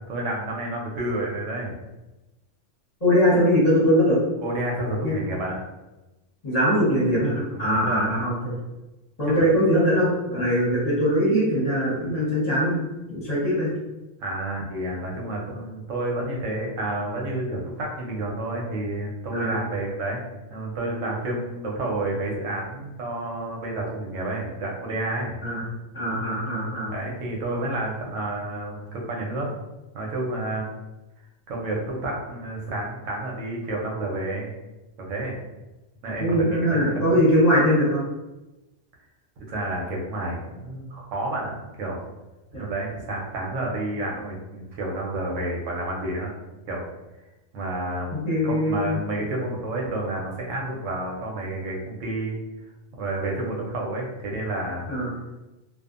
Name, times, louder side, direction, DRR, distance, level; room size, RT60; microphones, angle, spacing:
voice 1, 0.1-1.7 4.4-5.6 7.5-8.1 9.2-9.5 14.2-20.2 20.5-25.4 26.9-29.5 29.9-30.7 31.5-34.5 35.1-35.3 36.0-37.2 39.5-42.0 42.5-46.3 46.7-46.8 47.5-52.4 52.6-54.9, right 1 dB, 90° right, -1 dB, 1.0 m, -30 dB
voice 2, 3.0-4.2 5.0-5.2 6.4-8.6 9.2-12.8 13.1-13.7 19.3-19.5 25.4-25.6 25.9-26.9 36.2-38.0 42.5-42.6 48.1-48.9 54.9-55.1, equal, 35° left, -7 dB, 1.0 m, -21 dB
2.6 x 2.4 x 2.5 m, 1.0 s
omnidirectional pair, 1.2 m